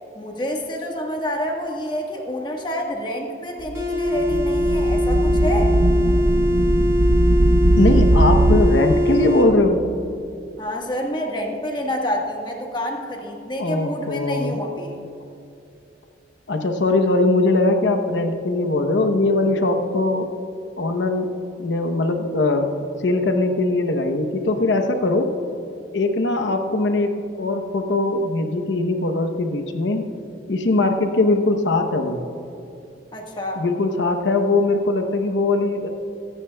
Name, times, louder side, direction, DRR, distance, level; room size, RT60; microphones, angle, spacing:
voice 1, 0.1-5.7 10.6-15.0 33.1-33.6, equal, 25° left, 0 dB, 1.4 m, -28 dB
sound 1, 3.6-8.6, right 1 dB, 70° right, 0.7 m, -19 dB
sound 2, 3.7-9.5, left 1 dB, 15° right, 1.5 m, -22 dB
voice 2, 7.8-9.8 13.6-14.6 16.5-20.3 20.8-22.7 23.0-25.3 25.9-30.1 30.5-32.2 33.6-35.9, left 2 dB, 85° left, 5 dB, 0.9 m, -21 dB
23.5 x 9.9 x 2.3 m, 2.7 s
head